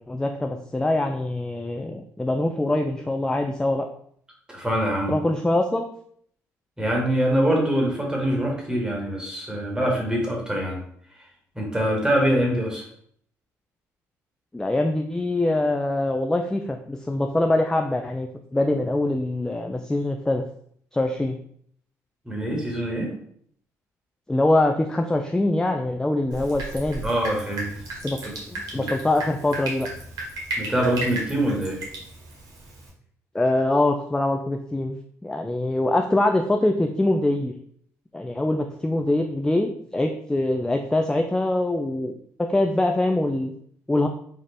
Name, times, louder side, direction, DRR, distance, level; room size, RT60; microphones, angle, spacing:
voice 1, 0.1-3.9 5.1-5.9 14.5-20.4 20.9-21.4 24.3-27.0 28.0-28.2 28.5-29.9 33.3-37.5 38.1-42.1 42.4-43.5 43.9-44.1, left 1 dB, 10° left, 4 dB, 0.3 m, -23 dB
voice 2, 4.5-5.1 6.8-10.8 11.5-12.8 22.2-23.1 27.0-27.7 28.7-28.8 30.6-31.8, right 1 dB, 10° right, -1 dB, 1.6 m, -24 dB
Drip, 26.3-32.9, right 2 dB, 65° right, 1.3 m, -35 dB
4.1 x 2.4 x 3.4 m, 0.64 s
supercardioid pair, 65°, 7 cm